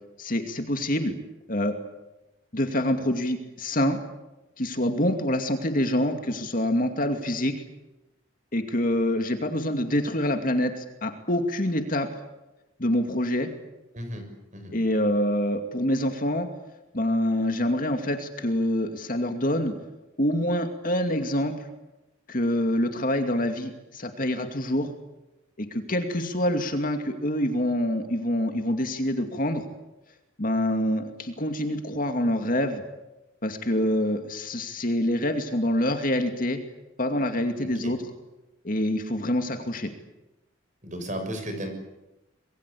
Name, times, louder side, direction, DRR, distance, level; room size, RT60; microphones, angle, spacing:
voice 1, 0.2-1.1 1.5-1.7 2.5-4.0 4.6-7.5 8.5-12.1 12.8-13.5 14.7-16.5 16.9-19.7 20.2-21.5 22.3-24.9 25.6-29.6 30.4-32.8 33.4-36.6 37.0-38.0 38.6-39.9, left 1 dB, 45° left, 5 dB, 2.5 m, -26 dB
voice 2, 37.6-38.0 40.8-41.7, equal, 40° right, 6 dB, 6.5 m, -34 dB
26.0 x 22.0 x 8.6 m, 0.99 s
head